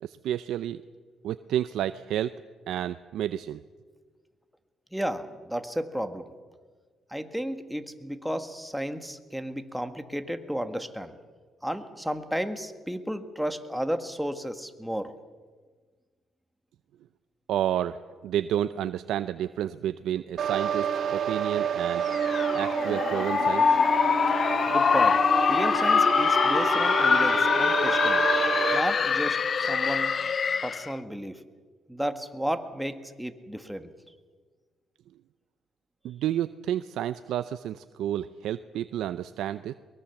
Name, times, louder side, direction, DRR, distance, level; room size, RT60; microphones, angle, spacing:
voice 1, 0.0-0.8 1.2-2.3 2.7-3.6 17.5-22.1 22.5-23.8 36.0-39.7, right 11 dB, 80° right, 12 dB, 0.6 m, -30 dB
voice 2, 4.9-6.3 7.1-11.2 11.6-15.1 24.7-25.2 25.5-28.2 28.7-30.1 30.6-31.4 31.9-33.9, equal, ahead, 8 dB, 1.7 m, -33 dB
sound 1, 20.4-28.8, right 7 dB, 65° right, 2.1 m, -29 dB
sound 2, 22.1-30.9, left 6 dB, 45° left, 0.7 m, -24 dB
23.0 x 21.0 x 7.1 m, 1.5 s
cardioid pair, 90°, 0 cm